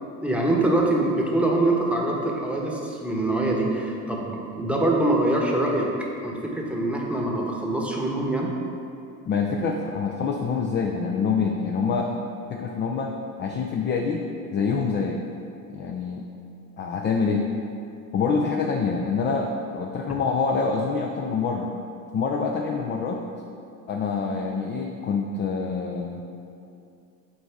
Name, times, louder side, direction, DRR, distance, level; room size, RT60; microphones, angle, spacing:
voice 1, 0.2-5.9 6.2-8.5, right 1 dB, 5° right, -1 dB, 1.0 m, -24 dB
voice 2, 9.3-12.1 12.5-14.2 14.5-15.2 15.7-16.3 16.8-17.5 18.1-21.7 22.1-23.2 23.9-26.3, left 5 dB, 25° left, 2 dB, 0.4 m, -26 dB
7.8 x 4.0 x 3.6 m, 2.6 s
hypercardioid pair, 75°, 45 cm